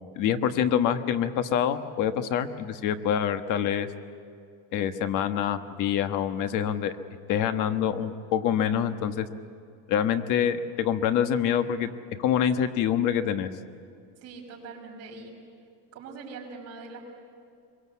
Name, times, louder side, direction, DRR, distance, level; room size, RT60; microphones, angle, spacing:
voice 1, 0.2-3.9 4.7-6.9 7.3-9.3 9.9-11.9 12.2-13.5, left 9 dB, 55° left, 9 dB, 1.4 m, -26 dB
voice 2, 14.2-15.4 15.9-17.0, right 4 dB, 40° right, -1 dB, 5.7 m, -42 dB
24.5 x 23.0 x 8.4 m, 2.4 s
cardioid pair, 165°, 37 cm